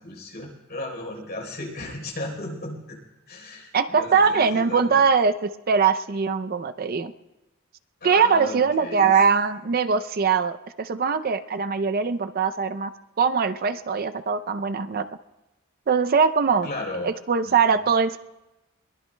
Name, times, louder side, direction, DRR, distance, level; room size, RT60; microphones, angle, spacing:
voice 1, 0.0-3.0 3.3-5.0 8.0-9.2 16.6-17.1 17.4-17.8, left 1 dB, 50° left, 1 dB, 3.9 m, -35 dB
voice 2, 3.7-7.1 8.0-12.9 13.2-15.0 15.9-16.7 17.0-18.2, right 5 dB, 45° right, 10 dB, 0.5 m, -22 dB
22.5 x 19.5 x 2.2 m, 0.98 s
head